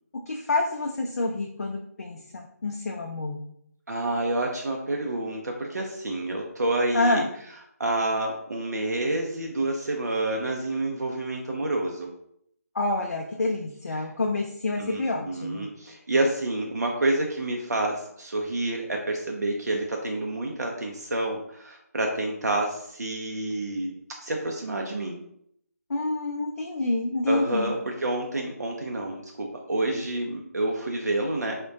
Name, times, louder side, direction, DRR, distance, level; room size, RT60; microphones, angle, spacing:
voice 1, 0.3-3.4 6.9-7.3 12.7-15.7 25.9-27.7, left 2 dB, 65° left, 1 dB, 0.4 m, -28 dB
voice 2, 3.9-7.2 7.8-12.1 14.8-25.2 27.3-31.6, right 2 dB, 80° right, 1 dB, 0.5 m, -28 dB
3.5 x 2.2 x 2.5 m, 0.72 s
figure-of-eight pair, 155°, 9 cm